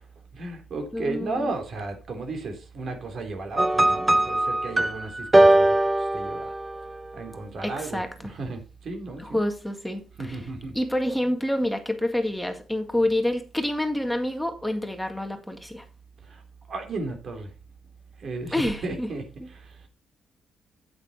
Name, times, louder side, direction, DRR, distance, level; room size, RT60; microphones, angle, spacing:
voice 1, 0.3-6.5 7.1-9.4 10.2-10.8 16.2-16.4 16.7-17.5 18.2-19.9, right 3 dB, 55° right, 3.6 m, -34 dB
voice 2, 0.9-1.5 7.6-8.1 9.2-10.4 10.7-15.8 18.5-19.1, left 1 dB, 5° left, 1.9 m, -27 dB
sound 1, 3.6-7.0, right 1 dB, 15° right, 0.7 m, -20 dB
8.7 x 8.6 x 4.4 m
cardioid pair, 90°, 0 cm